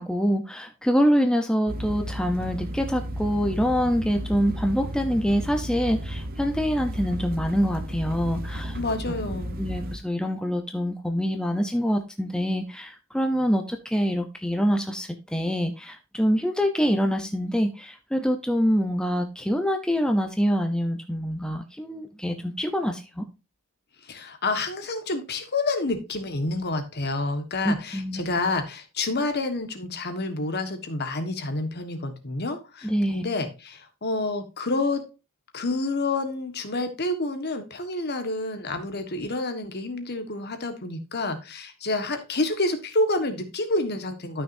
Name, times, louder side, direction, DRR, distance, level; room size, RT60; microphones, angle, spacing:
voice 1, 0.0-8.8 9.6-23.2 27.6-28.4 32.8-33.2, equal, 5° left, 5 dB, 0.7 m, -25 dB
sound 1, 1.7-10.0, equal, 40° right, 0.8 m, -33 dB
voice 2, 8.7-9.6 24.0-35.0 35.5-44.4, left 2 dB, 50° left, 8 dB, 1.5 m, -28 dB
13.0 x 6.1 x 2.7 m, 0.29 s
head